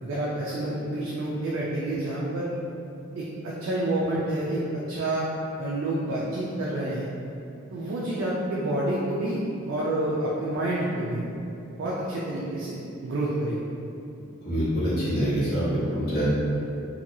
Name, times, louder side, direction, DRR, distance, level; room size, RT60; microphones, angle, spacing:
voice 1, 0.0-2.5 3.1-5.3 5.6-7.1 7.7-9.4 9.7-11.2 11.8-13.6, right 1 dB, 60° right, -6 dB, 0.3 m, -28 dB
voice 2, 14.4-16.3, equal, 45° left, -11 dB, 0.9 m, -25 dB
2.7 x 2.2 x 2.6 m, 2.6 s
head